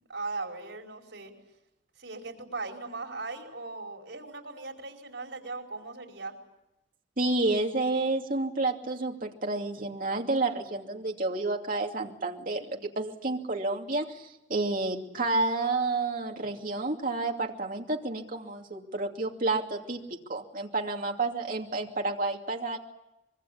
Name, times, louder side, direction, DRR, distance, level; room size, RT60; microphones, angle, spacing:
voice 1, 0.1-1.3 2.0-6.3, right 3 dB, 90° right, 2 dB, 5.0 m, -38 dB
voice 2, 7.2-20.0 20.3-22.8, right 2 dB, 50° right, 2 dB, 2.7 m, -30 dB
25.0 x 23.0 x 8.7 m, 0.91 s
head